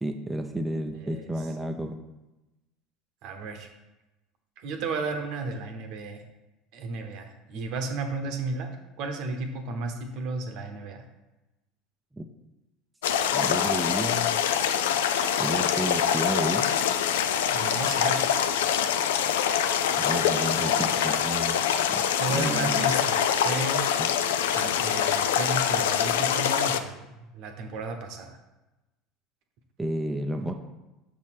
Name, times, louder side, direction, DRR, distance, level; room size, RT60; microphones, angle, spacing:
voice 1, 0.0-2.0 12.1-12.3 13.3-14.4 15.4-16.7 20.0-21.6 21.9-22.0 22.3-22.9 29.8-30.5, right 1 dB, 5° right, 3 dB, 0.6 m, -31 dB
voice 2, 1.0-1.3 3.2-3.7 4.6-6.2 6.7-8.7 9.0-11.0 17.5-18.4 22.2-23.8 24.2-28.4, right 3 dB, 50° right, 6 dB, 0.9 m, -33 dB
sound 1, 13.0-26.8, left 8 dB, 65° left, 0.4 m, -25 dB
7.0 x 4.2 x 4.7 m, 1.0 s
figure-of-eight pair, 70°, 0 cm